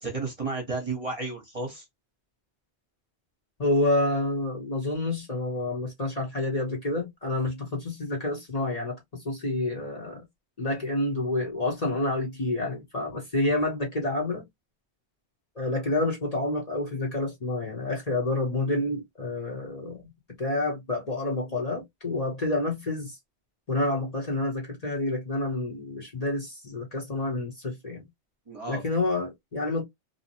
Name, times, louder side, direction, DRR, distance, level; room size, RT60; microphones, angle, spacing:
voice 1, 0.0-1.8 28.5-28.8, right 3 dB, 35° right, 0.9 m, -32 dB
voice 2, 3.6-10.2 10.6-14.5 15.6-20.1 20.4-23.2 23.7-28.1 28.7-29.8, left 2 dB, 40° left, 0.9 m, -28 dB
2.7 x 2.0 x 2.7 m
omnidirectional pair, 1.2 m